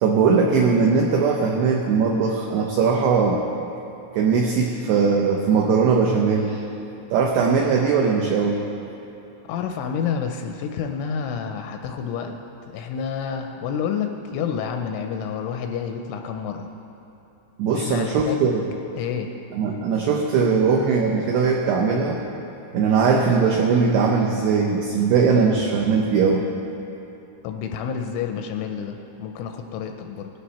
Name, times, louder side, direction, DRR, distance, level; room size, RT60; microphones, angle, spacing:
voice 1, 0.0-3.4 4.1-6.6 7.1-8.6 17.6-18.6 19.5-22.3 22.7-26.5, right 5 dB, 85° right, 1 dB, 2.3 m, -20 dB
voice 2, 9.5-12.4 12.7-16.7 17.7-18.5 18.9-19.3 27.4-30.3, left 7 dB, 85° left, 5 dB, 2.8 m, -29 dB
18.0 x 12.5 x 4.2 m, 2.9 s
omnidirectional pair, 5.9 m